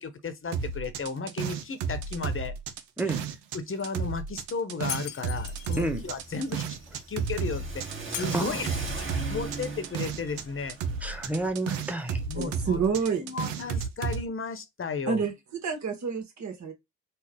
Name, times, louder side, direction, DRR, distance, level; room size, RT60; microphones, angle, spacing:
voice 1, 0.0-2.5 3.5-6.7 6.9-10.8 12.3-12.8 13.0-15.2, left 4 dB, 40° left, 1.1 m, -34 dB
sound 1, 0.5-3.6 3.8-10.4 10.7-14.2, right 6 dB, 85° right, 0.6 m, -33 dB
voice 2, 3.0-3.3 5.8-6.0 8.3-8.8 11.0-12.2, right 1 dB, 5° right, 1.2 m, -30 dB
Shatter, 4.9-5.9 8.1-9.2, left 10 dB, 75° left, 0.6 m, -39 dB
Car / Accelerating revving vroom, 5.3-11.5, right 3 dB, 35° right, 1.7 m, -39 dB
voice 3, 12.3-13.5 15.1-15.3 15.6-16.7, right 5 dB, 55° right, 1.5 m, -29 dB
4.2 x 2.3 x 3.6 m
hypercardioid pair, 40°, 34 cm